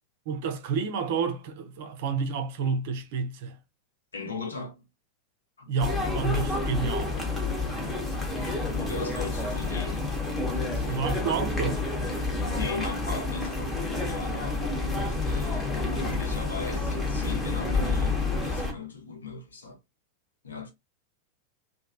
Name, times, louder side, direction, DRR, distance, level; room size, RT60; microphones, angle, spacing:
voice 1, 0.3-3.6 5.7-7.2 10.9-11.8, right 5 dB, 50° right, 0.7 m, -29 dB
voice 2, 4.1-4.8 5.6-5.7 7.6-7.7 8.3-10.1 10.5-11.1 12.4-19.8 20.4-20.7, left 4 dB, 70° left, 0.9 m, -38 dB
sound 1, 5.8-18.7, left 3 dB, 15° left, 1.0 m, -29 dB
3.1 x 2.4 x 2.4 m
figure-of-eight pair, 90°, 0 cm